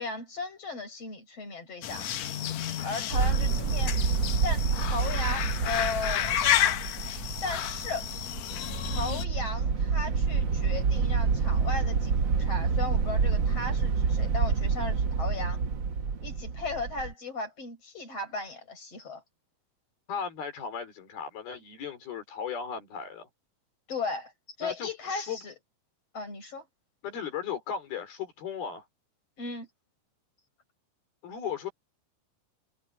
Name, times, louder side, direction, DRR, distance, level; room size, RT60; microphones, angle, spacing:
voice 1, 0.0-2.1 2.8-4.0 4.4-6.4 7.4-8.1 8.8-15.6 16.2-19.2 23.9-24.3 24.6-25.5 26.1-26.6 29.4-29.7, left 3 dB, 40° left, 8.4 m, -36 dB
sound 1, 1.8-9.3, left 10 dB, 65° left, 1.9 m, -31 dB
sound 2, 3.1-17.1, right 5 dB, 60° right, 1.2 m, -28 dB
voice 2, 20.1-23.3 24.6-25.4 27.0-28.8 31.2-31.7, left 7 dB, 80° left, 6.0 m, -36 dB
omnidirectional pair, 4.3 m